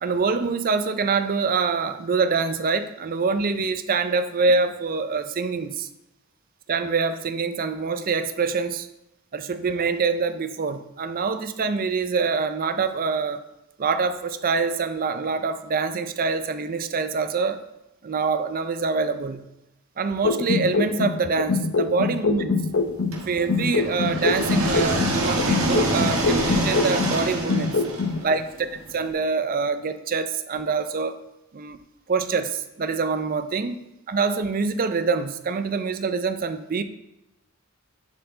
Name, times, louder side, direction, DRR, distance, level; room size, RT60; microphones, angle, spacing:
voice 1, 0.0-5.9 6.7-8.9 9.3-13.4 13.8-17.6 18.0-19.5 20.0-22.5 23.2-27.8 28.2-28.4 28.9-31.2 31.5-31.8 32.1-36.8, right 4 dB, 40° right, 10 dB, 0.5 m, -25 dB
sound 1, 20.2-23.2 23.5-27.2 27.5-28.2, left 4 dB, 70° left, 0.7 m, -24 dB
sound 2, 23.1-29.0, right 1 dB, 65° right, 1.6 m, -26 dB
10.5 x 4.5 x 3.8 m, 0.93 s
head